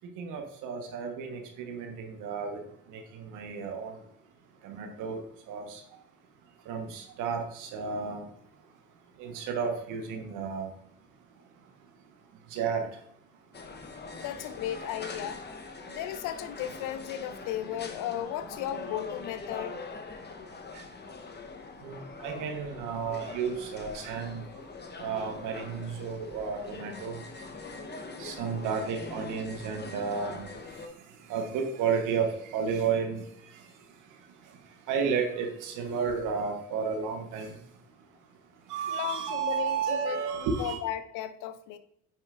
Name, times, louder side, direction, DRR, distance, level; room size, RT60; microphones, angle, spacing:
voice 1, 0.2-2.6 2.9-3.9 4.6-5.2 5.5-5.8 6.7-8.3 9.2-10.7 12.5-12.8 21.8-24.4 25.0-27.2 28.2-30.4 31.3-33.2 34.9-37.5 38.7-40.8, right 6 dB, 85° right, 1.3 m, -32 dB
sound 1, 13.5-30.9, left 4 dB, 35° left, 1.0 m, -43 dB
voice 2, 14.1-15.4 15.9-19.8 38.9-40.2 40.6-41.8, left 11 dB, 85° left, 0.7 m, -35 dB
8.8 x 5.6 x 2.5 m
supercardioid pair, 70°, 30 cm